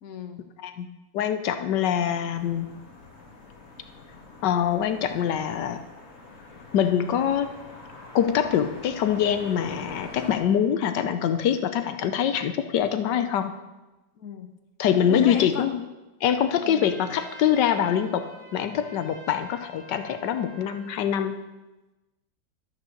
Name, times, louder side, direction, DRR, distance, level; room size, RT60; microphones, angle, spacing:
voice 1, 0.0-0.4 14.2-14.5 15.0-15.7 16.6-16.9, left 6 dB, 55° left, 7 dB, 1.4 m, -35 dB
voice 2, 1.1-2.7 4.4-5.8 6.7-7.5 8.1-13.5 14.8-15.8 16.2-21.4, left 9 dB, 75° left, 9 dB, 1.3 m, -24 dB
sound 1, 2.3-10.4, left 3 dB, 40° left, 1.8 m, -45 dB
Trumpet, 16.7-21.0, equal, 65° right, 3.1 m, -47 dB
12.0 x 6.5 x 6.5 m, 1.1 s
omnidirectional pair, 2.0 m